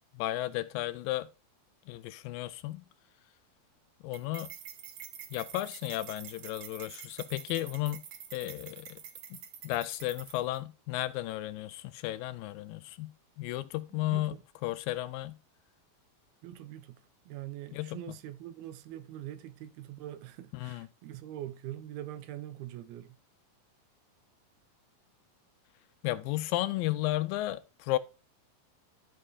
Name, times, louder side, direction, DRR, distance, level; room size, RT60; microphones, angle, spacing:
voice 1, 0.1-1.3 1.9-2.8 4.0-4.5 5.3-8.0 8.3-9.0 9.3-9.4 9.6-13.1 13.4-14.3 14.6-15.4 17.7-18.0 20.6-20.9 26.0-28.0, left 16 dB, 80° left, 2.2 m, -33 dB
sound 1, 4.1-10.6, right 9 dB, 70° right, 1.8 m, -47 dB
voice 2, 13.9-14.4 16.4-23.2, right 13 dB, 85° right, 2.7 m, -43 dB
13.5 x 5.6 x 2.4 m
omnidirectional pair, 4.3 m